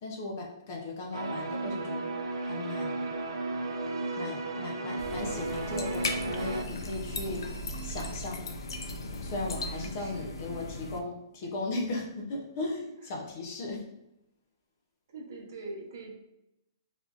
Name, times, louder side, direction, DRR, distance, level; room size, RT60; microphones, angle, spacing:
voice 1, 0.0-2.1 2.4-3.0 4.2-7.4 7.8-8.4 9.2-13.8, left 2 dB, 30° left, 0 dB, 0.4 m, -37 dB
sound 1, 1.1-6.6, right 2 dB, 85° right, 0.5 m, -34 dB
sound 2, 5.0-11.0, left 2 dB, 90° left, 0.4 m, -37 dB
voice 2, 9.6-10.3 13.0-13.1 15.1-16.2, right 3 dB, 50° right, -1 dB, 0.8 m, -43 dB
3.4 x 2.6 x 2.3 m, 0.88 s
hypercardioid pair, 180°, 2 cm